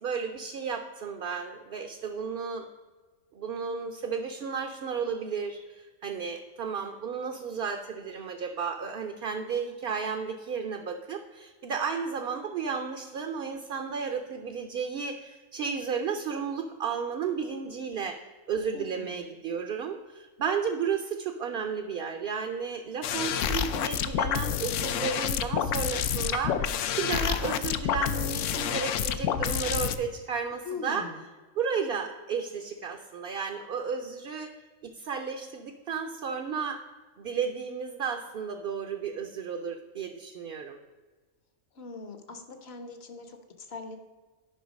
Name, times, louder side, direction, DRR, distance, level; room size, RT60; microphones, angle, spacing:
voice 1, 0.0-2.7 3.3-31.1 31.6-34.5 34.8-36.8 37.2-40.8, right 6 dB, 55° right, 5 dB, 0.7 m, -33 dB
voice 2, 18.7-19.3 30.6-31.2 41.7-44.0, left 4 dB, 55° left, 7 dB, 1.1 m, -41 dB
sound 1, 23.0-30.0, left 9 dB, 75° left, 0.9 m, -28 dB
10.0 x 5.5 x 5.1 m, 1.3 s
omnidirectional pair, 1.4 m